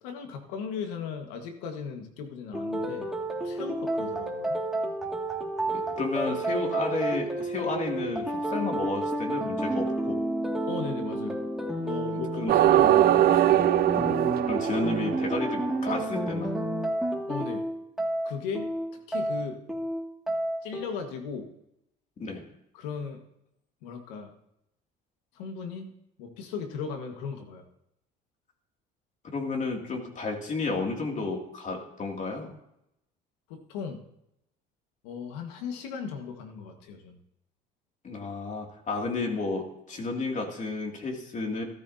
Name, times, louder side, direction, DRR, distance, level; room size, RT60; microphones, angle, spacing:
voice 1, 0.0-3.1 3.4-4.6 10.7-11.4 11.8-13.6 17.3-17.7 18.2-18.7 19.1-19.6 20.6-21.5 22.7-23.2 23.8-24.3 25.3-25.9 26.2-27.6 33.5-34.0 35.0-37.2, left 6 dB, 85° left, 5 dB, 1.7 m, -37 dB
sound 1, 2.5-20.8, right 1 dB, ahead, 2.2 m, -30 dB
voice 2, 5.7-10.2 12.1-12.5 14.4-16.5 22.2-22.4 29.3-32.5 38.0-41.6, left 3 dB, 40° left, 1 dB, 2.6 m, -32 dB
sound 2, 12.5-15.8, right 13 dB, 50° right, 0.5 m, -22 dB
13.5 x 13.5 x 2.8 m, 0.81 s
supercardioid pair, 85°, 20 cm